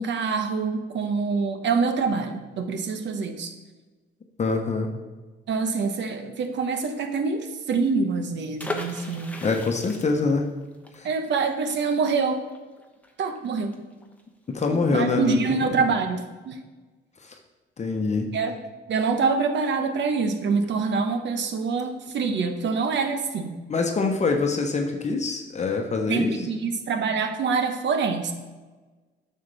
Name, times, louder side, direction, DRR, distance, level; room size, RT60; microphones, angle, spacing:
voice 1, 0.0-3.5 5.5-9.4 11.0-12.4 13.2-13.8 14.7-16.6 18.3-18.6 18.9-23.6 26.1-28.3, right 4 dB, 65° right, 7 dB, 1.0 m, -25 dB
voice 2, 4.4-4.9 9.4-10.5 10.9-11.1 14.5-15.4 17.2-17.3 17.8-18.3 23.7-26.5, left 3 dB, 35° left, 3 dB, 1.0 m, -24 dB
sound 1, 8.6-14.2 14.5-14.6 14.9-15.2, left 2 dB, 5° left, 1.0 m, -38 dB
9.4 x 6.5 x 3.4 m, 1.3 s
cardioid pair, 90°, 20 cm